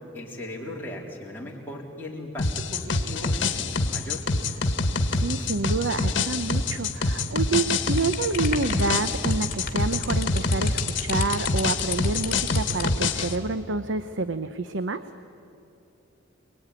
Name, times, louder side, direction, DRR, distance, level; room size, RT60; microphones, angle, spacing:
voice 1, 0.1-4.2, left 1 dB, 10° left, -3 dB, 3.8 m, -38 dB
sound 1, 2.4-13.3, left 3 dB, 60° left, 1.7 m, -26 dB
voice 2, 5.2-15.0, right 3 dB, 65° right, 11 dB, 0.8 m, -28 dB
sound 2, 8.0-13.0, left 5 dB, 45° left, 2.3 m, -33 dB
27.5 x 21.0 x 9.8 m, 2.8 s
head